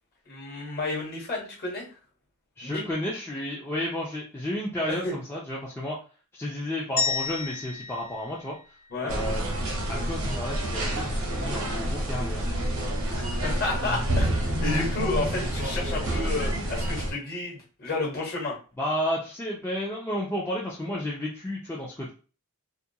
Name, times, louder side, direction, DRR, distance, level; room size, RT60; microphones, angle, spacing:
voice 1, 0.3-1.9 2.6-2.9 5.0-5.1 8.9-9.1 13.2-18.5, left 2 dB, 45° left, -1 dB, 1.1 m, -31 dB
voice 2, 2.6-6.0 6.3-8.6 9.0-9.5 9.9-12.5 18.8-22.1, left 1 dB, 10° left, -5 dB, 0.4 m, -32 dB
sound 1, 7.0-9.2, left 5 dB, 70° left, 0.9 m, -32 dB
sound 2, 9.1-17.1, right 1 dB, 80° right, 0.8 m, -28 dB
2.3 x 2.2 x 2.7 m, 0.36 s
head